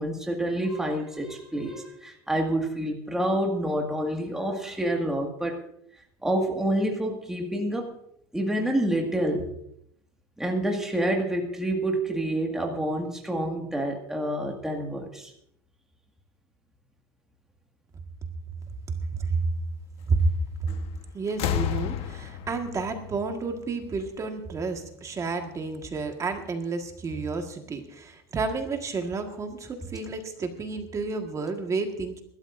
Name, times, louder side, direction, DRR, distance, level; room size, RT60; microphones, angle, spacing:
voice 1, 0.0-5.6 6.2-7.9 8.3-9.5 10.4-15.3, right 1 dB, 5° right, 1 dB, 1.9 m, -28 dB
voice 2, 19.1-19.4 20.1-20.3 21.1-32.2, right 4 dB, 25° right, 4 dB, 1.6 m, -30 dB
sound 1, 20.7-21.0 21.3-24.0 25.2-25.3, left 10 dB, 50° left, 1.2 m, -32 dB
24.5 x 13.0 x 2.6 m, 0.73 s
supercardioid pair, 135°, 13 cm